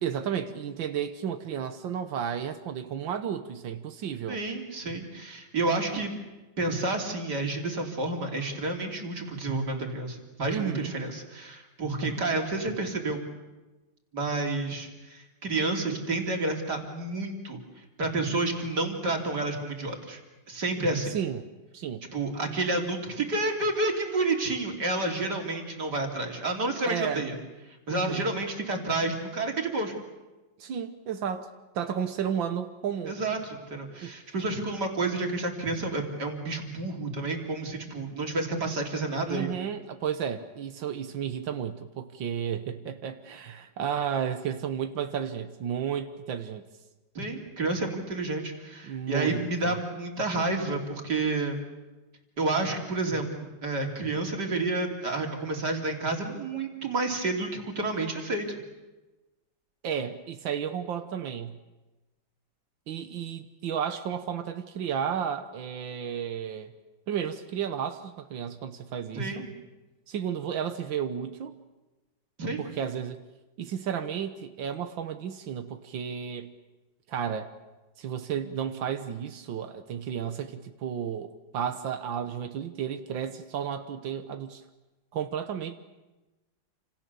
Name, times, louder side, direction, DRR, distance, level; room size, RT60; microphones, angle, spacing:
voice 1, 0.0-4.4 10.5-10.9 21.1-21.4 21.7-22.0 26.8-27.3 27.9-28.3 30.6-31.5 31.7-33.2 34.0-34.1 39.3-46.6 48.8-49.8 59.8-61.6 62.9-66.7 67.1-69.5 70.1-71.6 72.6-73.2 73.6-76.5 77.1-77.5 78.0-84.6 85.1-85.8, right 8 dB, 85° right, 8 dB, 1.9 m, -33 dB
voice 2, 4.3-6.1 6.6-13.2 14.1-17.6 18.0-20.2 20.5-21.2 22.1-27.4 27.9-29.9 33.1-39.5 47.2-51.6 52.4-58.6 69.1-69.5 72.4-72.6, right 2 dB, 60° right, 2 dB, 3.7 m, -30 dB
29.0 x 26.5 x 7.0 m, 1.1 s
omnidirectional pair, 2.0 m